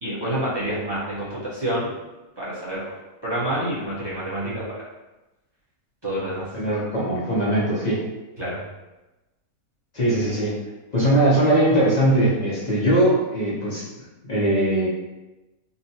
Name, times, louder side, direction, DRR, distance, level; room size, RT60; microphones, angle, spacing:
voice 1, 0.0-1.9 2.4-4.9 6.0-6.5 8.4-8.6, right 1 dB, 25° right, -10 dB, 0.6 m, -28 dB
voice 2, 6.5-8.0 9.9-10.6 10.9-13.9 14.3-14.9, right 1 dB, 50° left, -7 dB, 0.5 m, -20 dB
3.9 x 2.0 x 2.7 m, 1.1 s
omnidirectional pair, 1.6 m